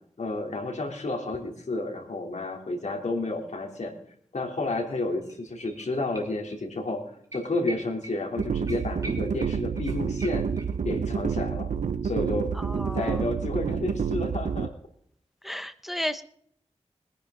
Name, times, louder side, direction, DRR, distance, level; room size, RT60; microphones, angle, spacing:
voice 1, 0.2-3.9 4.3-10.5 10.8-11.7 12.0-12.5 12.9-14.7, left 2 dB, 75° left, 2 dB, 3.2 m, -31 dB
sound 1, 4.9-5.0 5.2-6.6 6.9-7.0 7.3-11.0 11.3-11.4, right 1 dB, 30° right, 3.4 m, -44 dB
sound 2, 8.4-14.7, right 6 dB, 85° right, 0.7 m, -29 dB
voice 2, 12.5-13.3 15.4-16.2, equal, ahead, 10 dB, 0.9 m, -33 dB
22.0 x 10.0 x 3.8 m, 0.66 s
wide cardioid pair, 95°, 12 cm